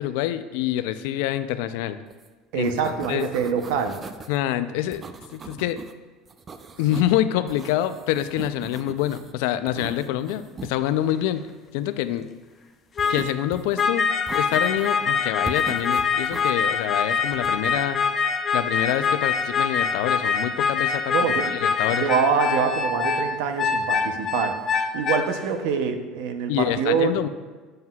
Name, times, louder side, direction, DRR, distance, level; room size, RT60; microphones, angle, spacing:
voice 1, 0.0-2.0 2.5-3.3 4.3-5.0 5.3-5.8 6.8-11.4 11.7-12.3 13.1-14.1 14.3-18.0 18.5-22.1 26.5-27.3, left 12 dB, 80° left, 12 dB, 0.4 m, -26 dB
sound 1, 2.1-2.3 2.5-4.4 4.9-5.9 6.3-7.2 7.5-9.3 9.7-10.7 13.0-13.9 14.3-15.0 15.4-16.5 17.3-17.8, right 4 dB, 25° right, 0.4 m, -40 dB
voice 2, 2.5-4.0 21.1-21.6 22.0-24.6 24.9-27.1, right 6 dB, 75° right, 7 dB, 0.7 m, -25 dB
sound 2, 11.1-11.2 13.0-13.3 13.8-25.4, left 5 dB, 30° left, 0.6 m, -24 dB
7.7 x 7.3 x 2.3 m, 1.3 s
supercardioid pair, 115°, 0 cm